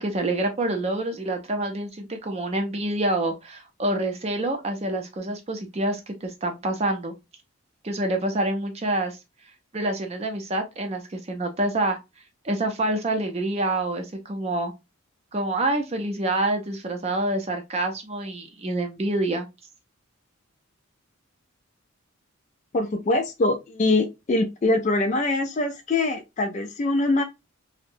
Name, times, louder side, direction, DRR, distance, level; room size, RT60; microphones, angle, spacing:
voice 1, 0.0-7.1 7.8-9.2 9.7-12.0 12.4-14.7 15.3-19.5, right 2 dB, 30° right, 0.5 m, -27 dB
voice 2, 22.7-27.2, left 2 dB, 35° left, 0.3 m, -23 dB
2.6 x 2.0 x 2.5 m
head